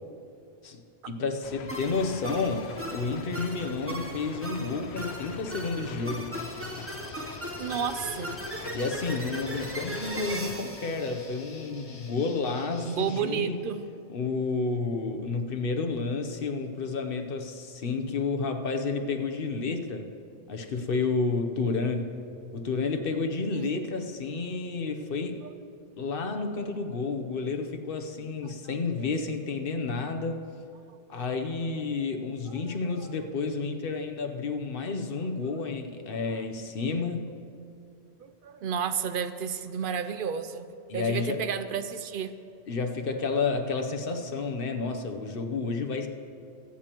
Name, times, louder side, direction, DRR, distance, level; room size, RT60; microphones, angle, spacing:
voice 1, 0.6-6.3 8.7-13.6 14.1-20.1 20.5-22.1 22.5-25.4 26.0-30.5 31.1-37.3 40.9-41.4 42.7-46.1, left 4 dB, 60° left, 5 dB, 1.0 m, -30 dB
sound 1, 1.4-10.6, left 7 dB, 85° left, 0.8 m, -43 dB
sound 2, 1.7-12.1, right 1 dB, 15° right, 0.7 m, -38 dB
Guitar, 6.3-13.2, left 4 dB, 40° left, 0.6 m, -49 dB
voice 2, 7.6-8.3 12.8-13.8 23.5-23.7 25.4-25.5 28.4-28.5 29.0-29.1 31.1-31.2 32.5-33.1 35.4-35.5 38.2-40.7 40.9-42.3, right 7 dB, 60° right, 11 dB, 0.7 m, -32 dB
24.0 x 8.5 x 3.0 m, 2.5 s
omnidirectional pair, 1.1 m